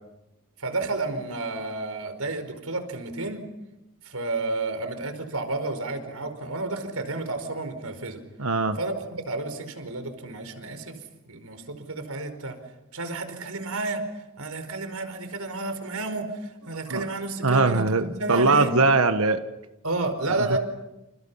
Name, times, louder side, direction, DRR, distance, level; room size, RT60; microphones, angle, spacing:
voice 1, 0.6-3.4 4.0-8.2 8.7-11.0 11.2-12.6 12.9-14.0 14.4-18.7 19.8-20.6, right 2 dB, 90° right, 9 dB, 4.9 m, -31 dB
voice 2, 8.4-8.8 16.9-17.0 17.4-19.4 20.4-20.5, right 3 dB, 75° right, 8 dB, 1.4 m, -21 dB
29.5 x 29.5 x 5.7 m, 0.93 s
head